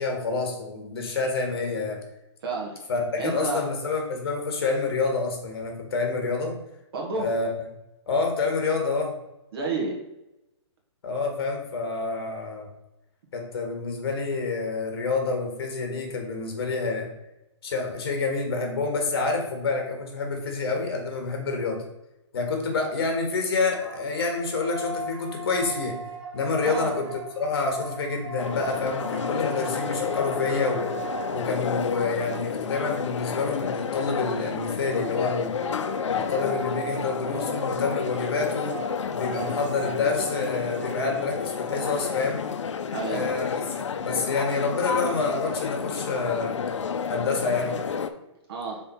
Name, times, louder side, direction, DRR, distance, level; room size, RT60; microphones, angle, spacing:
voice 1, 0.0-2.0 2.9-6.5 7.2-7.5 8.1-9.1 11.0-12.7 13.3-17.1 17.6-21.8 22.3-26.0 26.3-27.1 27.4-30.8 31.3-35.6 36.1-38.8 39.1-42.4 43.1-43.6 44.0-46.6 47.1-47.8, left 3 dB, 55° left, 3 dB, 1.6 m, -28 dB
voice 2, 2.4-2.8 3.2-3.6 6.9-7.3 9.5-10.0 26.6-26.9 42.9-43.3 48.5-48.8, right 3 dB, 50° right, -1 dB, 1.7 m, -30 dB
sound 1, 23.3-32.0 34.3-42.1, right 3 dB, 75° right, 1.9 m, -39 dB
sound 2, 28.4-48.1, left 6 dB, 80° left, 0.6 m, -30 dB
5.5 x 3.9 x 4.4 m, 0.91 s
hypercardioid pair, 170°, 15 cm